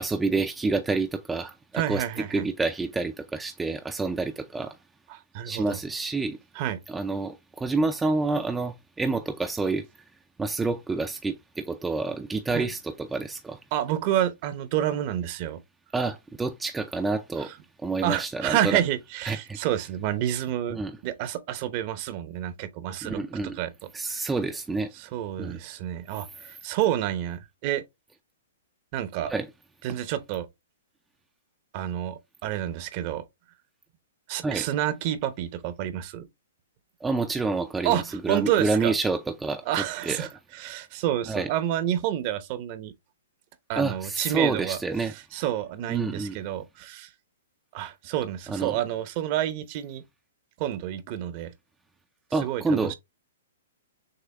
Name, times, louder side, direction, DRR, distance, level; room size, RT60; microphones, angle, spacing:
voice 1, 0.0-2.0 2.3-4.8 5.4-6.4 6.9-9.9 10.4-13.6 15.9-17.5 17.8-18.8 19.2-19.6 20.7-21.0 23.0-23.6 23.9-24.9 25.4-25.6 29.3-29.5 34.4-34.7 37.0-39.6 40.1-40.3 41.3-41.5 43.8-45.1 45.9-46.4 48.5-48.8 52.3-52.9, right 3 dB, 10° right, 0.4 m, -28 dB
voice 2, 1.7-2.5 5.1-5.8 6.5-6.8 12.5-12.7 13.7-15.6 17.4-17.5 18.0-24.3 25.0-27.8 28.9-29.3 29.8-30.5 31.7-33.2 34.3-36.3 37.8-38.9 39.7-42.9 43.7-47.1 47.7-50.0 50.6-51.5 52.4-52.9, right 12 dB, 40° right, 0.8 m, -29 dB
6.6 x 2.2 x 3.3 m
hypercardioid pair, 145°, 0 cm